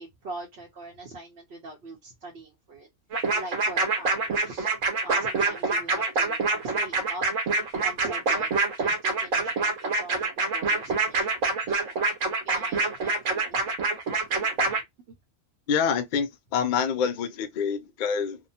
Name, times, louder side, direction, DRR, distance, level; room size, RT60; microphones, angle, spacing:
voice 1, 0.0-2.9 3.1-4.7 5.0-7.2 7.8-11.3 11.6-12.1 12.4-13.7 14.3-15.2, right 2 dB, 60° right, 0.9 m, -42 dB
sound 1, 3.1-14.8, right 3 dB, 80° right, 1.3 m, -26 dB
voice 2, 15.7-18.4, left 6 dB, 60° left, 0.5 m, -26 dB
2.9 x 2.2 x 2.6 m
omnidirectional pair, 1.4 m